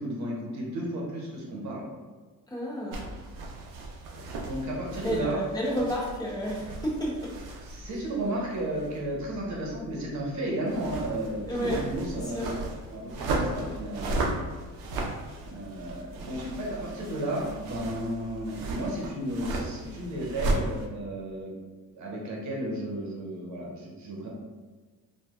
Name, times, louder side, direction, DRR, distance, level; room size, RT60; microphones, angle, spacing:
voice 1, 0.0-1.8 4.4-5.4 7.7-12.5 12.9-14.3 15.3-21.5 21.9-24.3, right 1 dB, 55° right, -2 dB, 0.9 m, -33 dB
voice 2, 2.5-3.2 5.0-7.3 7.9-8.0 11.4-11.8 12.1-12.6, equal, 10° left, -4 dB, 0.7 m, -31 dB
sound 1, 2.9-20.9, right 2 dB, 90° right, 0.6 m, -36 dB
3.1 x 2.3 x 2.3 m, 1.4 s
cardioid pair, 115°, 35 cm